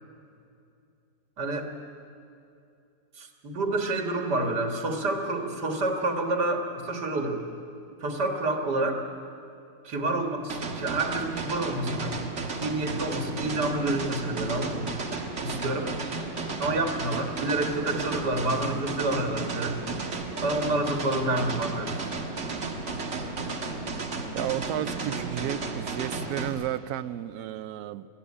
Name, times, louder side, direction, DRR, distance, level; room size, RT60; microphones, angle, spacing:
voice 1, 1.4-1.7 3.2-7.4 8.0-9.0 9.8-12.3 12.6-15.0 15.4-15.9 16.6-19.8 20.4-22.1, right 2 dB, 90° right, 3 dB, 2.3 m, -28 dB
sound 1, 10.5-26.5, right 3 dB, 45° right, 1.8 m, -33 dB
voice 2, 24.3-28.1, right 11 dB, 70° right, 13 dB, 1.1 m, -32 dB
21.5 x 13.5 x 9.9 m, 2.6 s
omnidirectional pair, 1.7 m